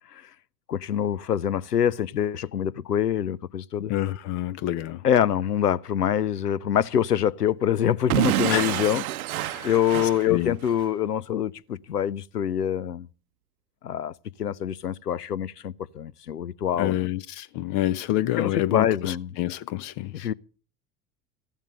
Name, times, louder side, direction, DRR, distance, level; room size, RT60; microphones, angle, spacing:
voice 1, 0.7-3.9 5.0-9.0 9.6-13.1 13.8-14.1 14.4-17.1 18.4-19.3 20.1-20.3, left 9 dB, 80° left, 0.7 m, -25 dB
voice 2, 3.9-5.0 8.5-8.8 9.4-9.8 10.2-10.6 16.8-20.3, left 14 dB, 40° left, 0.7 m, -28 dB
Explosion / Shatter, 8.1-10.9, right 14 dB, 65° right, 0.8 m, -27 dB
15.0 x 12.0 x 6.7 m
figure-of-eight pair, 75°, 46 cm